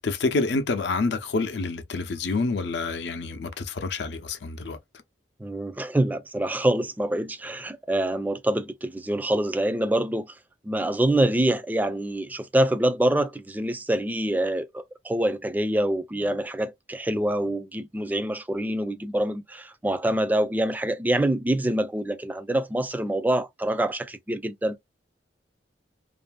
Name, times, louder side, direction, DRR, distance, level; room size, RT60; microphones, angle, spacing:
voice 1, 0.0-4.8, left 3 dB, 75° left, 0.5 m, -27 dB
voice 2, 5.4-10.3 10.6-24.8, right 1 dB, 10° right, 0.3 m, -25 dB
2.6 x 2.5 x 2.2 m
head